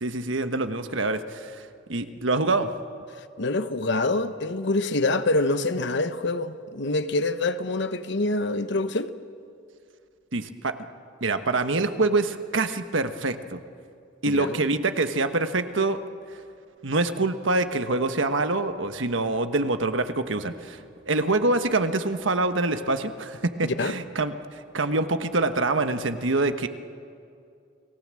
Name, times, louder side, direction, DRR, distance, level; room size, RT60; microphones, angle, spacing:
voice 1, 0.0-2.7 10.3-10.7 11.2-13.6 14.2-16.0 16.8-20.8 21.1-26.7, right 2 dB, 70° right, 1.3 m, -25 dB
voice 2, 3.4-9.1 14.3-14.6 23.6-23.9, left 2 dB, 65° left, 1.0 m, -26 dB
30.0 x 19.0 x 7.6 m
head